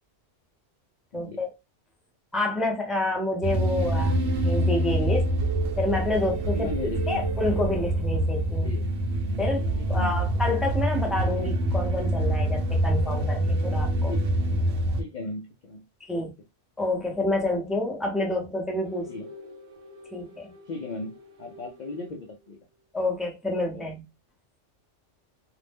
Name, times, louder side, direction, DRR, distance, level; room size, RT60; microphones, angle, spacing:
voice 1, 1.1-1.5 2.3-5.3 5.8-6.7 7.1-8.7 9.4-14.2 16.0-16.3 16.8-19.1 20.1-20.5 22.9-24.0, left 2 dB, ahead, 0.3 m, -28 dB
sound 1, 3.4-15.0, right 1 dB, 65° right, 0.8 m, -26 dB
sound 2, 5.4-8.6 12.1-14.7 18.8-22.6, right 5 dB, 80° right, 1.1 m, -41 dB
voice 2, 6.5-7.3 8.6-8.8 9.8-10.3 11.0-11.1 13.8-14.3 15.0-15.8 16.1-16.3 19.1-19.3 20.7-22.6 23.7-23.8, left 2 dB, 60° left, 0.4 m, -37 dB
2.5 x 2.0 x 3.4 m
omnidirectional pair, 1.3 m